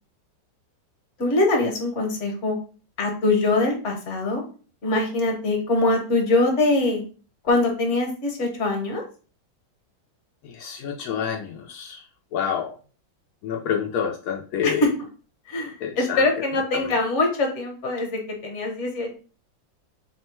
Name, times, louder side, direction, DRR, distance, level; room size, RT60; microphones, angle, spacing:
voice 1, 1.2-2.6 3.0-4.4 4.8-7.0 7.4-9.0 14.6-14.9 15.5-19.1, left 2 dB, 45° left, 2 dB, 1.1 m, -23 dB
voice 2, 10.4-12.0 12.3-12.7 13.4-14.8 15.8-16.2 16.7-16.8, left 8 dB, 80° left, 0 dB, 0.8 m, -28 dB
3.7 x 2.1 x 4.3 m, 0.38 s
omnidirectional pair, 2.1 m